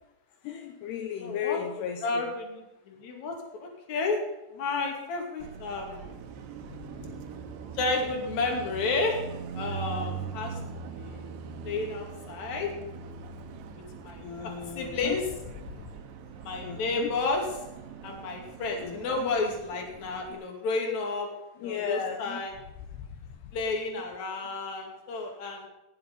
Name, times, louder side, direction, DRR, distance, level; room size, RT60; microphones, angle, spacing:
voice 1, 0.4-2.3 14.2-15.2 15.8-15.9 16.6-17.1 18.8-19.3 21.6-22.4, left 8 dB, 75° left, 4 dB, 3.0 m, -35 dB
voice 2, 1.2-1.6 2.0-3.4 3.6-4.2 4.5-6.2 7.8-9.2 9.5-10.6 10.9-11.3 11.6-12.7 14.0-15.3 16.4-17.5 18.0-21.3 21.6-22.6 23.5-25.7, left 3 dB, 45° left, 1 dB, 3.5 m, -31 dB
Car passing by, 5.4-20.3, right 6 dB, 90° right, 3.2 m, -41 dB
18.0 x 7.8 x 5.4 m, 0.98 s
omnidirectional pair, 4.9 m